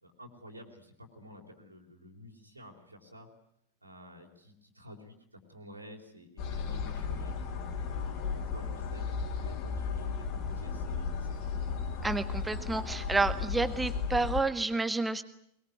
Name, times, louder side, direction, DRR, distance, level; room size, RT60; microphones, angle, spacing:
voice 1, 0.0-3.3 3.8-11.8, left 1 dB, 85° right, 0 dB, 4.0 m, -51 dB
sound 1, 6.4-14.4, left 5 dB, 45° left, 3.6 m, -35 dB
voice 2, 12.0-15.2, right 3 dB, 10° right, 12 dB, 1.6 m, -30 dB
22.0 x 22.0 x 9.5 m, 0.73 s
figure-of-eight pair, 90°, 0 cm